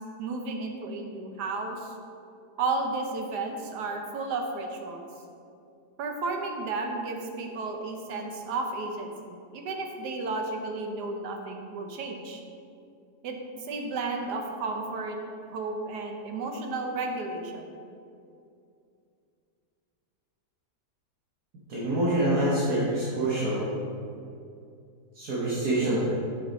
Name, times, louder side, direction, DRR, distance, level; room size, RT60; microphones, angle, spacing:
voice 1, 0.2-1.9 2.6-5.1 6.0-12.4 13.2-15.2 15.5-17.7, right 3 dB, 85° right, 3 dB, 1.4 m, -33 dB
voice 2, 21.7-23.6 25.1-26.1, right 1 dB, 70° right, -8 dB, 1.8 m, -26 dB
6.9 x 6.5 x 4.0 m, 2.5 s
omnidirectional pair, 1.7 m